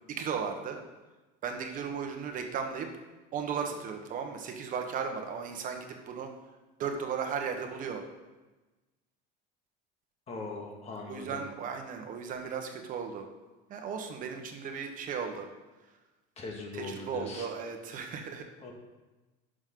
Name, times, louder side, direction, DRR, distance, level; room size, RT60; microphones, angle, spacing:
voice 1, 0.2-0.8 1.4-2.9 3.3-6.3 6.8-8.0 11.1-13.3 13.7-15.5 16.8-18.4, right 6 dB, 45° right, 4 dB, 1.2 m, -36 dB
voice 2, 10.3-11.5 16.4-17.5 18.6-18.7, left 3 dB, 30° left, 1 dB, 1.8 m, -40 dB
10.5 x 6.4 x 3.8 m, 1.1 s
cardioid pair, 140°, 20 cm